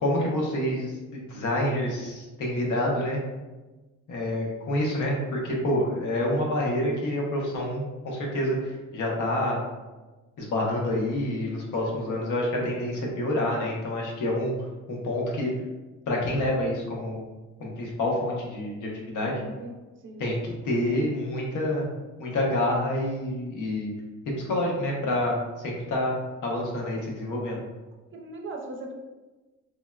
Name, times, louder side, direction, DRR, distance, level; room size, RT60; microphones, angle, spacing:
voice 1, 0.0-3.2 4.1-9.6 10.4-14.5 14.9-15.5 16.1-17.2 17.6-19.4 20.2-21.9 22.2-23.9 24.4-27.6, left 1 dB, 80° left, -2 dB, 0.8 m, -28 dB
voice 2, 11.8-12.4 19.3-19.8 20.0-20.3 26.8-26.9 28.1-28.9, right 2 dB, 40° right, 1 dB, 0.5 m, -40 dB
3.5 x 2.1 x 2.3 m, 1.2 s
cardioid pair, 90°, 30 cm